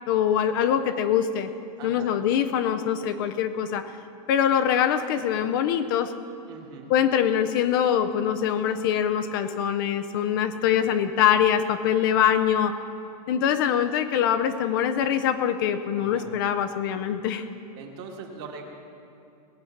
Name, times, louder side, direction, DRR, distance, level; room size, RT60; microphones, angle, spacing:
voice 1, 0.1-1.5 1.8-3.9 4.3-6.1 6.9-12.7 13.3-17.4, left 9 dB, 35° left, 8 dB, 0.5 m, -23 dB
voice 2, 1.8-2.1 6.5-6.9 16.0-16.3 17.8-18.6, right 5 dB, 40° right, 2 dB, 1.7 m, -41 dB
19.5 x 7.8 x 5.8 m, 2.8 s
supercardioid pair, 175°, 20 cm